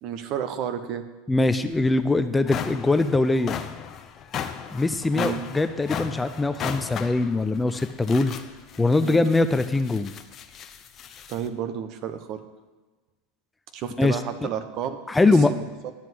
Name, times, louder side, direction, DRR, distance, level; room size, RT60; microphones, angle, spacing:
voice 1, 0.0-1.0 5.1-5.4 9.0-9.2 11.3-12.4 13.7-15.0 15.2-15.9, right 9 dB, 50° right, 9 dB, 1.1 m, -31 dB
voice 2, 1.3-3.5 4.7-8.3 8.8-10.1 14.0-14.5 15.1-15.5, left 2 dB, 10° left, 11 dB, 0.5 m, -22 dB
sound 1, 1.7-1.8 2.2-11.5, left 8 dB, 35° left, 0.8 m, -36 dB
10.5 x 5.6 x 7.8 m, 1.2 s
hypercardioid pair, 100°, 0 cm